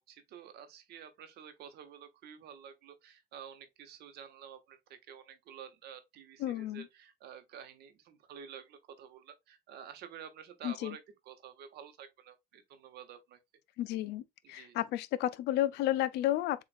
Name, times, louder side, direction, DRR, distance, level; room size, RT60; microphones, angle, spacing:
voice 1, 0.1-4.8 5.1-13.4 14.4-14.8, right 8 dB, 75° right, 0.9 m, -50 dB
voice 2, 6.4-6.9 10.6-10.9 13.8-14.2 14.5-16.6, left 13 dB, 80° left, 0.5 m, -32 dB
7.3 x 2.5 x 2.5 m
cardioid pair, 110°, 17 cm